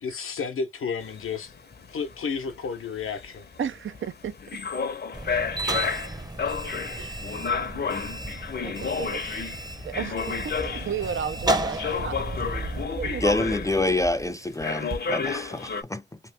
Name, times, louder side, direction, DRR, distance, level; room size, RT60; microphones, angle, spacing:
voice 1, 0.0-1.5 1.9-3.5 9.2-9.5 12.3-12.4, left 5 dB, 90° left, 0.7 m, -32 dB
sound 1, 1.0-11.2 11.8-14.2 14.6-15.8, left 5 dB, 50° left, 0.6 m, -31 dB
voice 2, 3.6-4.4 6.9-7.4 8.0-8.1 8.6-9.2 9.8-10.5 10.8-12.2 13.0-13.2, right 8 dB, 70° right, 0.4 m, -33 dB
sound 2, 5.1-12.8, right 1 dB, 20° right, 0.7 m, -33 dB
sound 3, 10.2-14.3 14.9-15.0, right 2 dB, 45° right, 1.1 m, -37 dB
voice 3, 13.2-16.2, left 2 dB, 15° left, 0.4 m, -27 dB
3.0 x 2.5 x 3.3 m
cardioid pair, 45°, 21 cm